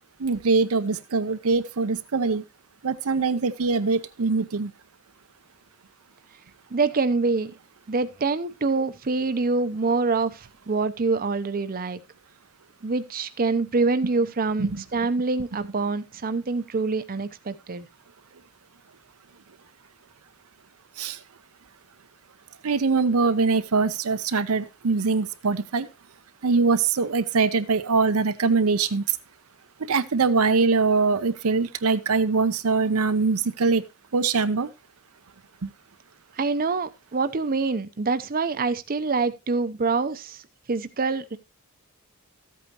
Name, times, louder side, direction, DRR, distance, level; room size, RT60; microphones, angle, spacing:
voice 1, 0.2-2.4 2.8-4.7 14.6-14.8 21.0-21.2 22.6-25.9 26.4-29.2 29.8-33.8 34.1-34.7 35.6-35.7, right 4 dB, 75° right, 0.7 m, -23 dB
voice 2, 6.7-7.5 7.9-12.0 12.8-17.9 36.4-40.4 40.7-41.4, right 4 dB, 40° right, 0.7 m, -25 dB
14.0 x 8.5 x 2.9 m
head